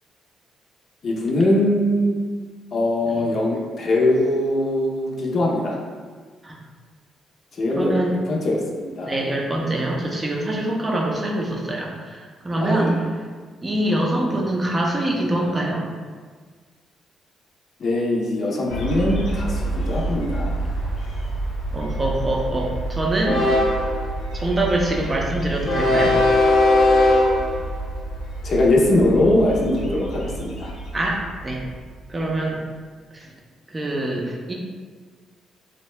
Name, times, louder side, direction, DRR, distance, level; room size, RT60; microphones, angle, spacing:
voice 1, 1.0-2.1 2.7-5.8 7.5-8.0 8.3-9.2 12.6-13.0 17.8-20.6 20.9-21.0 28.4-30.7, left 1 dB, 55° left, -2 dB, 0.5 m, -21 dB
voice 2, 7.7-8.1 9.0-13.0 13.6-15.8 21.7-23.4 24.3-26.2 30.9-31.6 32.1-32.6 33.1-33.3 33.7-34.6, right 1 dB, 25° right, -1 dB, 0.5 m, -24 dB
Train, 18.7-31.7, left 1 dB, 80° left, 0.8 m, -23 dB
2.7 x 2.1 x 3.1 m, 1.5 s
cardioid pair, 90°, 0 cm